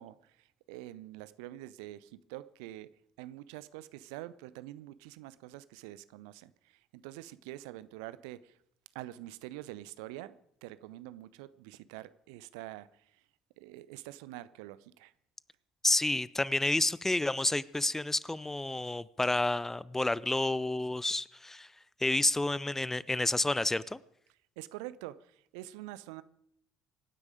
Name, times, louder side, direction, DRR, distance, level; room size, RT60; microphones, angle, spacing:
voice 1, 0.0-2.9 3.2-8.6 8.9-13.2 13.6-15.1 24.6-26.2, right 15 dB, 65° right, 0.6 m, -46 dB
voice 2, 15.8-21.7 22.0-24.0, left 2 dB, 10° left, 0.5 m, -30 dB
24.5 x 9.7 x 5.0 m
figure-of-eight pair, 55°, 4 cm